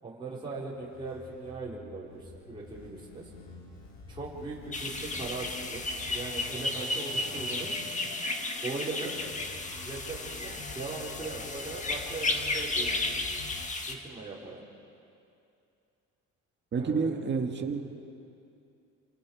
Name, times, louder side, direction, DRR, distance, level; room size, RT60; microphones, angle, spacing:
voice 1, 0.0-3.3 4.1-5.8 6.1-7.8 8.6-9.1 9.8-13.2 13.9-14.6 16.8-17.1, right 3 dB, 15° right, -7 dB, 4.9 m, -39 dB
sound 1, 0.8-13.7, left 3 dB, 60° left, 4.8 m, -47 dB
sound 2, 4.7-13.9, left 2 dB, 25° left, 1.7 m, -33 dB
voice 2, 16.7-17.8, right 5 dB, 40° right, 3 dB, 2.1 m, -29 dB
28.0 x 27.5 x 5.1 m, 2.6 s
cardioid pair, 125°, 29 cm